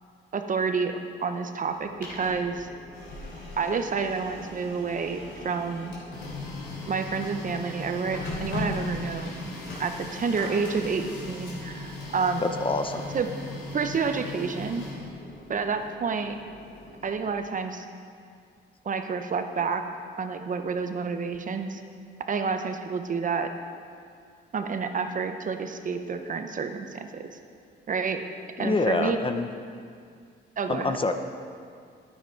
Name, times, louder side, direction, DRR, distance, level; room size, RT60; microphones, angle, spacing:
voice 1, 0.3-0.9 1.2-2.7 3.6-6.0 6.9-9.5 9.8-12.4 13.1-13.3 13.7-14.8 15.5-16.4 17.0-17.8 18.8-19.8 20.2-21.8 22.3-23.5 24.5-27.3 27.9-28.2 28.6-29.2 30.6-31.0, right 5 dB, 40° right, 7 dB, 0.8 m, -29 dB
Printer, 1.7-17.5, left 2 dB, 70° left, 3.2 m, -38 dB
voice 2, 12.4-13.1 28.6-29.5 30.7-31.1, left 3 dB, 25° left, 7 dB, 0.6 m, -26 dB
10.5 x 9.3 x 4.6 m, 2.2 s
cardioid pair, 90°, 20 cm